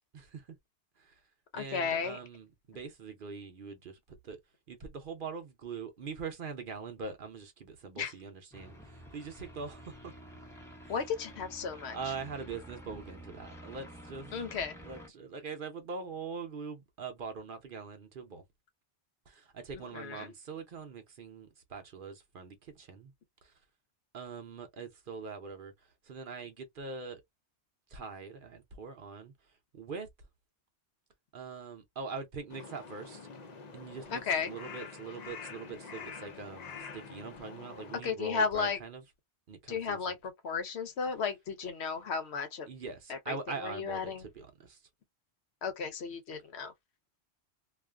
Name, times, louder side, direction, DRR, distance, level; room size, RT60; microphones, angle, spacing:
voice 1, 0.1-0.5 1.0-1.2 1.5-4.4 4.7-10.1 10.8-10.9 11.9-14.4 14.8-18.4 19.3-23.1 23.4-23.5 24.1-25.7 26.0-27.2 27.9-29.3 29.7-30.1 31.3-33.3 33.7-39.0 39.5-40.1 42.7-44.8, right 5 dB, 55° right, 0.7 m, -43 dB
voice 2, 1.5-2.2 8.0-8.1 10.9-12.0 14.3-14.7 19.9-20.3 34.1-34.5 38.0-38.8 39.7-42.7 43.1-43.4 43.6-44.2 45.6-46.7, left 5 dB, 70° left, 1.0 m, -34 dB
sound 1, 8.5-15.1, equal, 5° left, 0.7 m, -50 dB
Crow, 32.5-38.0, left 5 dB, 50° left, 0.6 m, -46 dB
2.4 x 2.4 x 2.2 m
omnidirectional pair, 1.2 m